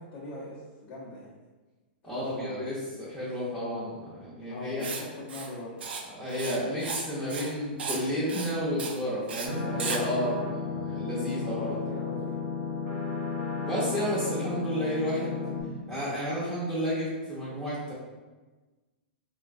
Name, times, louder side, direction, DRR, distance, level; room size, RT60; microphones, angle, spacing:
voice 1, 0.0-1.3 2.0-2.7 4.5-5.8 10.1-11.0 11.3-12.4, left 2 dB, 45° left, -9 dB, 0.8 m, -42 dB
voice 2, 2.0-4.9 6.1-11.7 13.6-15.5 15.9-17.9, equal, ahead, -11 dB, 0.8 m, -31 dB
Writing, 4.8-5.0 5.3-5.5 5.8-6.0 6.3-7.0 7.3-7.5 7.8-8.0 8.3-8.5 8.8-9.0 9.3-9.5 9.8-10.0, right 5 dB, 80° right, 0.4 m, -35 dB
sound 1, 9.4-15.6, left 4 dB, 50° right, 0.8 m, -33 dB
3.1 x 2.2 x 2.5 m, 1.2 s
hypercardioid pair, 135°, 6 cm